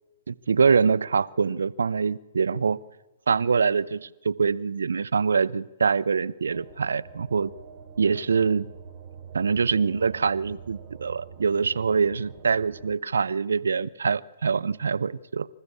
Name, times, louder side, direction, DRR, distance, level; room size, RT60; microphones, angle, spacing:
voice 1, 0.3-2.8 3.3-7.5 8.0-8.7 9.3-15.5, right 5 dB, 75° right, 16 dB, 0.7 m, -24 dB
sound 1, 6.4-13.0, right 7 dB, 45° right, 2.8 m, -45 dB
26.0 x 13.5 x 8.4 m, 1.1 s
hypercardioid pair, 125°, 0 cm